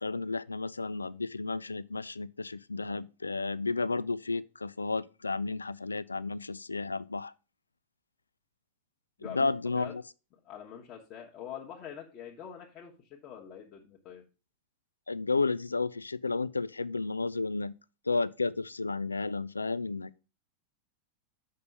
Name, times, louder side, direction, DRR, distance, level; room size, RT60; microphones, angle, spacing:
voice 1, 0.0-7.3 9.3-10.0 15.1-17.8 18.1-20.2, left 3 dB, 80° left, 0.3 m, -32 dB
voice 2, 9.2-9.9 10.4-14.2, left 9 dB, 35° left, 1.3 m, -45 dB
6.8 x 5.5 x 5.3 m
figure-of-eight pair, 90°, 0 cm